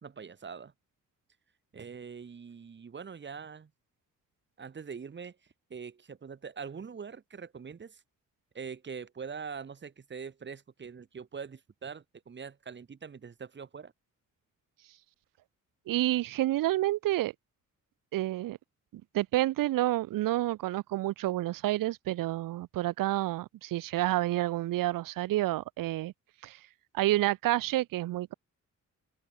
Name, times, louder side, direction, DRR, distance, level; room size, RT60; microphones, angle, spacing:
voice 1, 0.0-0.7 1.7-3.7 4.6-5.4 5.7-8.0 8.5-13.9, right 6 dB, 35° right, 1.9 m, -43 dB
voice 2, 15.9-17.3 18.1-18.6 18.9-26.1 26.4-26.6 26.9-28.3, right 15 dB, 85° right, 0.5 m, -29 dB
wide cardioid pair, 165°, 32 cm